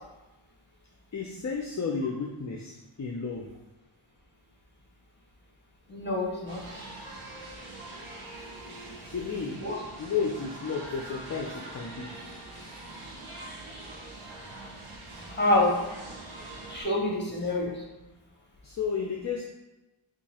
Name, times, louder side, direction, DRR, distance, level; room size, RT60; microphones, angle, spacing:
voice 1, 1.1-3.5 9.0-9.6 10.0-12.1 18.6-19.4, left 5 dB, 40° left, 0 dB, 0.4 m, -32 dB
voice 2, 5.9-6.6 9.6-9.8 15.3-15.7 16.7-17.8, left 1 dB, 20° left, -2 dB, 0.9 m, -26 dB
sound 1, 6.5-16.8, right 2 dB, 80° right, 0.8 m, -43 dB
2.8 x 2.4 x 4.1 m, 1.0 s
wide cardioid pair, 65°, 49 cm